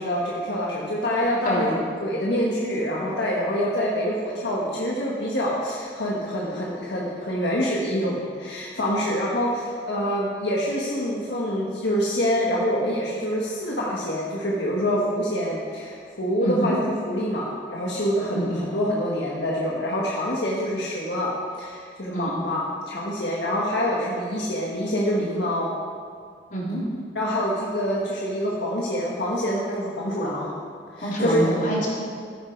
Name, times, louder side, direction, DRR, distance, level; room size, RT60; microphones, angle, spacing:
voice 1, 0.0-1.7 2.0-21.3 21.6-25.7 27.1-30.5 30.9-31.4, equal, 80° left, -5 dB, 1.6 m, -26 dB
voice 2, 16.4-16.8 18.3-18.6 22.1-22.3 26.5-26.8 31.0-31.9, right 1 dB, 50° left, -5 dB, 3.5 m, -26 dB
13.0 x 10.0 x 4.7 m, 2.1 s
head